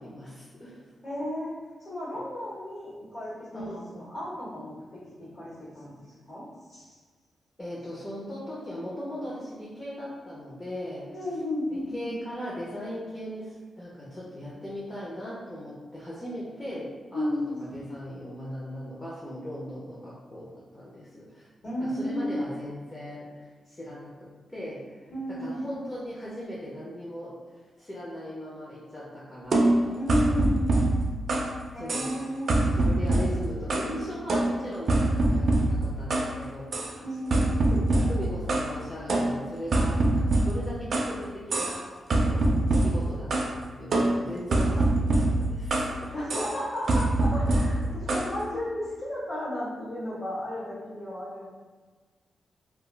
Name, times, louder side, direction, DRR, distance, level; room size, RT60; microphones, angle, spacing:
voice 1, 0.0-0.9 3.5-3.9 7.6-11.2 11.7-17.3 17.7-21.5 21.8-25.0 25.3-29.9 31.7-32.1 32.7-37.0 37.7-46.1 48.0-48.1, equal, 20° left, -7 dB, 0.5 m, -39 dB
voice 2, 1.0-1.5 1.8-7.0 11.1-12.1 17.1-17.6 21.6-22.4 25.1-25.6 30.0-30.7 31.7-32.8 37.0-37.6 46.1-51.5, left 1 dB, 50° left, -10 dB, 1.0 m, -33 dB
sound 1, 29.5-31.6 31.9-32.2 32.5-34.0 34.3-36.3 36.7-36.9 37.3-38.7 39.1-41.1 41.5-41.8 42.1-43.5 43.9-46.0 46.3-46.6 46.9-48.3, right 2 dB, 55° right, 0.3 m, -24 dB
2.2 x 2.1 x 3.1 m, 1.4 s
wide cardioid pair, 140°, 0 cm